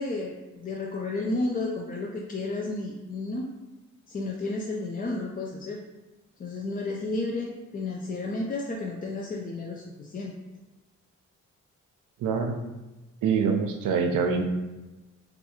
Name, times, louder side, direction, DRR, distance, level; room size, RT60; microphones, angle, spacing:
voice 1, 0.0-3.5 4.1-5.8 6.4-10.3, left 2 dB, 30° left, -1 dB, 0.4 m, -32 dB
voice 2, 12.2-12.6 13.2-14.4, right 5 dB, 75° right, 5 dB, 0.5 m, -25 dB
2.3 x 2.2 x 2.9 m, 1.1 s
supercardioid pair, 45°, 32 cm